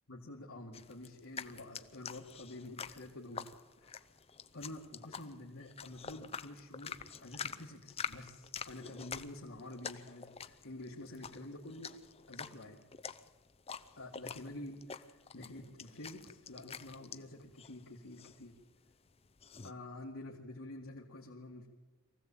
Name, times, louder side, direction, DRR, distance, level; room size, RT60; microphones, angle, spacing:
voice 1, 0.1-3.5 3.8-4.0 4.5-11.9 12.3-12.8 14.0-15.0 15.3-18.5 19.6-21.7, left 1 dB, 75° left, -3 dB, 2.1 m, -48 dB
sound 1, 0.7-19.7, left 6 dB, 30° left, 0.6 m, -47 dB
23.5 x 15.5 x 8.6 m, 1.3 s
head